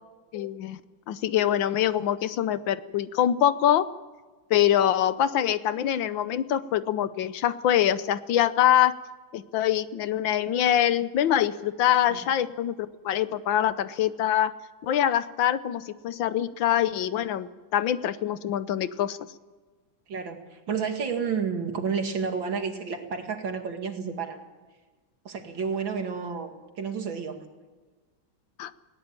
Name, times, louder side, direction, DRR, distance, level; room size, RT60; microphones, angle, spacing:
voice 1, 0.3-0.8 1.1-3.9 4.5-8.9 9.3-14.5 14.8-19.2 28.6-28.7, left 11 dB, 80° left, 14 dB, 1.6 m, -24 dB
voice 2, 20.1-24.4 25.2-27.4, right 6 dB, 80° right, 5 dB, 2.9 m, -31 dB
20.5 x 17.5 x 9.0 m, 1.3 s
omnidirectional pair, 2.1 m